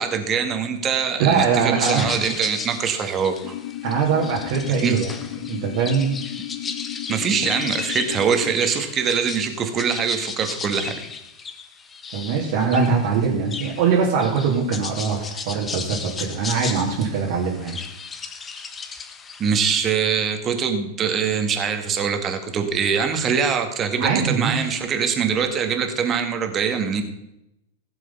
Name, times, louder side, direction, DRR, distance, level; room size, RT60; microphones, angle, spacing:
voice 1, 0.0-3.6 4.8-5.0 7.1-11.0 19.4-27.0, right 6 dB, 30° right, 7 dB, 2.0 m, -23 dB
voice 2, 1.2-2.2 3.8-5.2 5.5-6.2 12.1-17.8 24.0-24.7, right 5 dB, 55° right, -4 dB, 2.4 m, -22 dB
sound 1, 1.8-19.6, left 5 dB, 20° left, 1.3 m, -35 dB
sound 2, 3.4-8.6, left 15 dB, 50° left, 0.9 m, -34 dB
15.5 x 7.5 x 5.6 m, 0.86 s
figure-of-eight pair, 95°, 0 cm